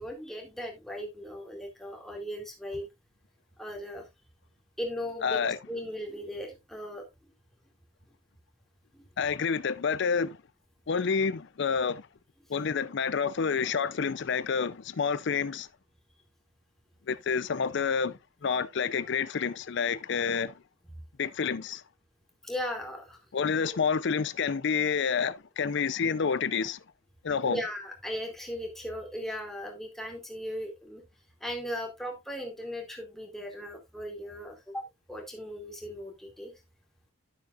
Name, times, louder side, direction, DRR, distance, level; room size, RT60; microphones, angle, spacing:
voice 1, 0.0-2.9 3.6-4.0 4.8-7.0 8.9-9.0 22.4-23.2 23.5-23.8 27.5-31.0 31.4-36.5, equal, ahead, 2.3 m, -37 dB
voice 2, 5.2-5.6 9.2-10.4 10.9-12.1 12.5-15.7 17.1-20.5 21.2-21.8 23.3-26.8 27.2-27.6, left 6 dB, 60° left, 0.5 m, -28 dB
12.0 x 6.5 x 2.4 m
head